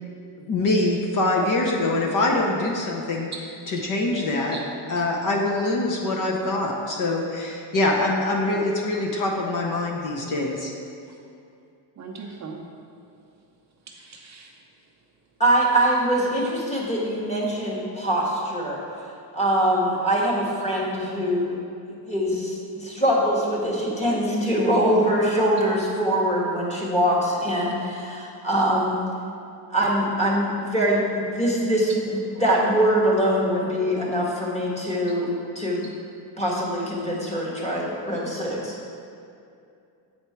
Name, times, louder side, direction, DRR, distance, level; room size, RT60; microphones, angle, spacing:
voice 1, 0.5-3.3 3.7-4.6 4.9-10.7, left 2 dB, 40° left, -1 dB, 0.7 m, -24 dB
voice 2, 12.0-12.6 13.9-14.5, right 5 dB, 35° right, -1 dB, 0.6 m, -39 dB
voice 3, 15.4-18.8 19.3-21.6 21.9-29.0 29.7-35.9 36.4-38.8, right 1 dB, 15° left, -5 dB, 1.3 m, -23 dB
8.3 x 4.4 x 4.5 m, 2.5 s
cardioid pair, 150°, 48 cm